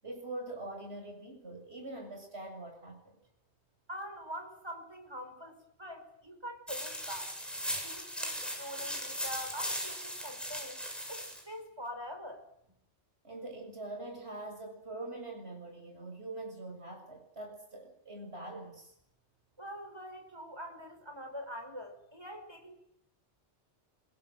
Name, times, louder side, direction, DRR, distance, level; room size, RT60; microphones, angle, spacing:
voice 1, 0.0-3.2 13.2-18.9, right 2 dB, 65° right, 2 dB, 7.2 m, -43 dB
voice 2, 3.9-7.3 7.8-10.8 11.1-12.4 19.6-22.7, equal, 25° right, 6 dB, 5.6 m, -44 dB
sound 1, 6.7-11.4, equal, ahead, 7.6 m, -38 dB
28.0 x 23.0 x 8.0 m, 0.77 s
omnidirectional pair, 1.2 m